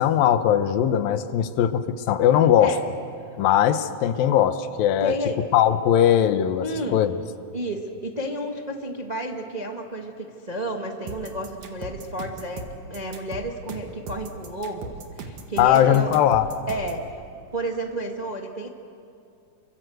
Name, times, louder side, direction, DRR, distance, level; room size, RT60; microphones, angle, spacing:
voice 1, 0.0-2.8 3.4-5.1 5.5-7.1 15.6-16.5, left 10 dB, 90° left, 10 dB, 2.8 m, -20 dB
voice 2, 5.0-5.4 6.6-7.0 7.5-16.1 16.7-17.2 17.5-18.7, right 1 dB, 35° right, 2 dB, 0.6 m, -31 dB
sound 1, 11.1-17.0, right 4 dB, 65° right, 3.3 m, -38 dB
29.5 x 25.0 x 7.9 m, 2.6 s
omnidirectional pair, 4.0 m